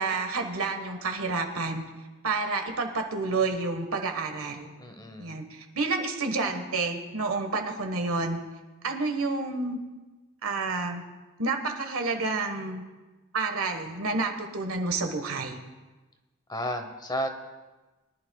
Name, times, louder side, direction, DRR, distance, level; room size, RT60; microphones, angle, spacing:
voice 1, 0.0-1.8 2.2-4.7 5.2-8.4 8.8-9.8 10.4-11.0 11.4-12.8 13.3-15.6, right 3 dB, 85° right, 5 dB, 1.4 m, -29 dB
voice 2, 4.8-5.4 16.5-17.3, equal, 20° left, 6 dB, 0.9 m, -32 dB
22.5 x 11.0 x 2.3 m, 1.2 s
head